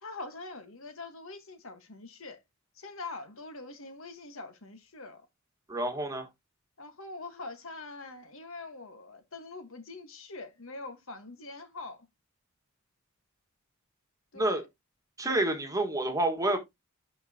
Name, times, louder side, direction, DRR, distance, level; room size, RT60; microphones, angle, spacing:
voice 1, 0.0-2.4 2.7-5.3 6.8-12.1 14.3-14.7, left 3 dB, 65° left, 1.5 m, -44 dB
voice 2, 5.7-6.3 14.3-14.6 15.2-16.6, right 1 dB, 15° right, 1.7 m, -28 dB
11.5 x 4.6 x 2.9 m
head